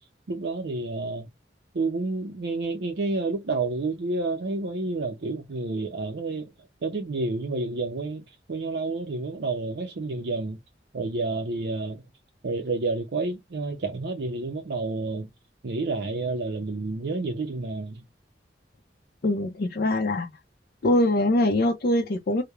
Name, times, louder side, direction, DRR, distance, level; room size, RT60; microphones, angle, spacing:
voice 1, 0.3-1.3 1.7-6.5 6.8-10.6 10.9-12.0 12.4-15.3 15.6-18.0, right 3 dB, 65° right, 0.5 m, -29 dB
voice 2, 19.2-20.3 20.8-22.4, left 1 dB, 55° left, 0.5 m, -23 dB
3.0 x 2.0 x 2.3 m
head